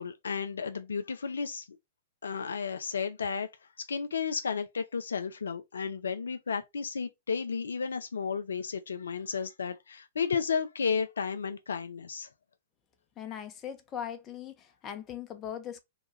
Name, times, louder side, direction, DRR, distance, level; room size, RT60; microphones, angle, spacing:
voice 1, 0.0-1.7 2.2-3.5 3.8-12.3, left 6 dB, 75° left, 0.4 m, -33 dB
voice 2, 13.2-15.8, left 9 dB, 30° left, 0.7 m, -40 dB
3.0 x 2.2 x 3.0 m
figure-of-eight pair, 110°, 0 cm